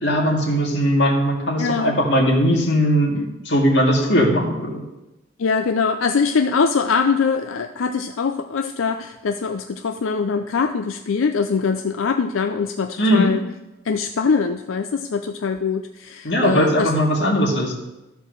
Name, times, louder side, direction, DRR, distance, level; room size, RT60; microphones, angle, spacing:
voice 1, 0.0-4.7 13.0-13.3 16.2-17.7, equal, 60° left, -1 dB, 2.2 m, -19 dB
voice 2, 1.6-1.9 5.4-13.4 13.8-16.9, left 5 dB, 90° left, 6 dB, 0.5 m, -22 dB
13.5 x 4.6 x 6.5 m, 1.0 s
head